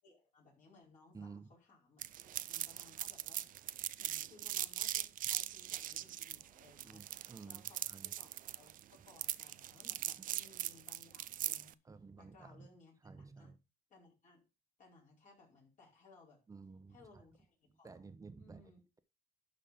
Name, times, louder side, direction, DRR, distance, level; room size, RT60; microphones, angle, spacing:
voice 1, 0.0-3.6 4.0-7.1 7.4-11.7 12.1-13.5 13.9-14.4 14.8-16.4 16.9-18.0 18.4-18.8, left 3 dB, 50° left, 4.7 m, -63 dB
voice 2, 1.1-1.5 6.8-8.1 11.9-12.7 13.0-13.6 16.5-17.0 17.8-18.6, right 4 dB, 20° right, 1.1 m, -53 dB
sound 1, 2.0-11.7, right 12 dB, 55° right, 0.5 m, -40 dB
11.5 x 4.2 x 5.2 m
cardioid pair, 110°, 17 cm